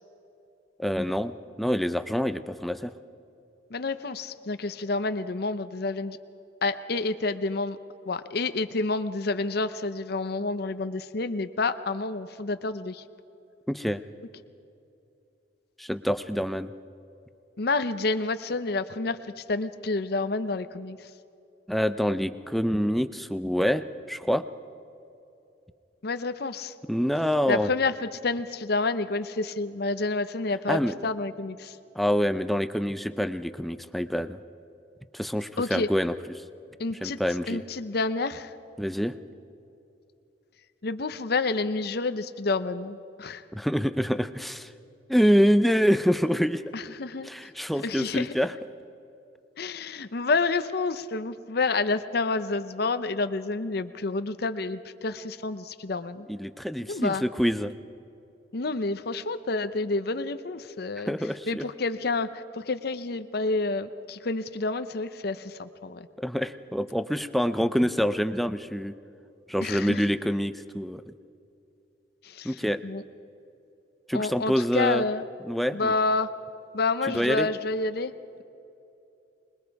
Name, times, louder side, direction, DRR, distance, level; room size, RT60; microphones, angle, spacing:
voice 1, 0.8-2.9 13.7-14.0 15.8-16.7 21.7-24.4 26.9-27.7 30.7-31.0 32.0-34.4 35.1-36.4 37.0-37.6 38.8-39.2 43.5-44.7 45.1-46.6 47.2-48.5 56.3-57.7 61.0-61.6 66.2-68.9 69.5-71.1 72.4-72.8 74.1-75.0 75.5-75.9 77.1-77.5, equal, ahead, 11 dB, 0.5 m, -26 dB
voice 2, 3.7-6.2 6.6-7.8 8.1-13.0 17.6-21.0 26.0-26.7 27.5-31.8 35.6-35.9 36.8-37.2 37.5-38.5 40.8-43.4 46.7-47.3 47.8-48.3 49.6-56.3 56.9-57.2 58.5-61.1 61.5-66.1 69.6-70.0 72.2-72.5 72.8-73.0 74.1-75.2 75.7-76.3 76.7-78.1, left 3 dB, 55° left, 11 dB, 0.7 m, -29 dB
26.0 x 21.0 x 4.7 m, 2.7 s
head